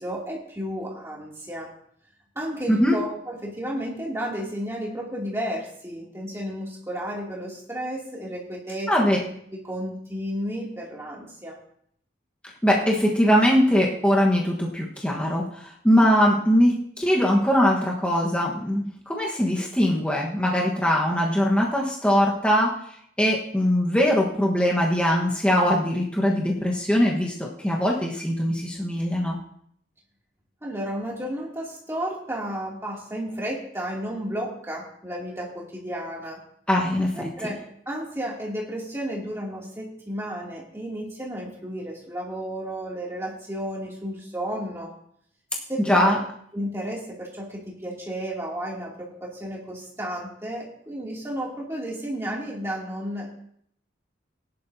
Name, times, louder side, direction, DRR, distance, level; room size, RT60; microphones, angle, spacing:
voice 1, 0.0-1.7 2.3-9.2 9.5-11.6 30.6-36.4 37.2-44.9 45.7-46.2 46.5-53.3, equal, 15° right, -4 dB, 2.7 m, -32 dB
voice 2, 8.9-9.2 12.6-22.7 23.2-29.4 36.7-37.3 45.9-46.2, equal, 5° left, -3 dB, 1.3 m, -21 dB
16.0 x 11.0 x 2.8 m, 0.66 s
head